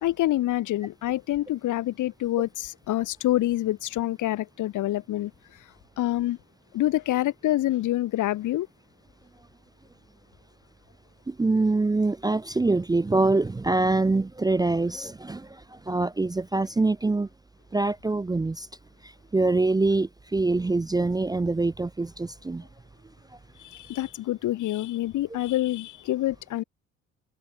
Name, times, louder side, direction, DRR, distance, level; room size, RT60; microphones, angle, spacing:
voice 1, 0.0-5.3 6.0-6.4 6.7-8.7 23.6-26.6, left 14 dB, 65° left, 1.7 m, -26 dB
voice 2, 11.3-15.5 15.9-17.3 17.7-18.7 19.3-22.6, right 3 dB, 10° right, 0.5 m, -24 dB
hypercardioid pair, 55°, 32 cm